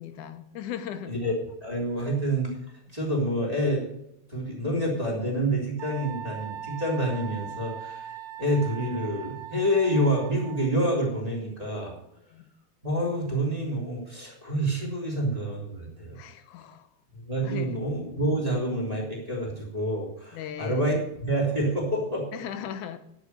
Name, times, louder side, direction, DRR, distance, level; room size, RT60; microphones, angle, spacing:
voice 1, 0.0-1.2 12.3-12.5 16.2-16.9 17.4-17.8 20.3-20.9 22.3-23.0, left 9 dB, 85° left, 2.3 m, -38 dB
voice 2, 1.6-2.6 2.9-3.8 4.3-11.9 12.8-16.2 17.1-22.3, right 1 dB, 10° right, 3.2 m, -27 dB
Wind instrument woodwind instrument, 5.8-10.8, right 8 dB, 70° right, 0.9 m, -40 dB
10.5 x 8.1 x 6.6 m
omnidirectional pair, 3.4 m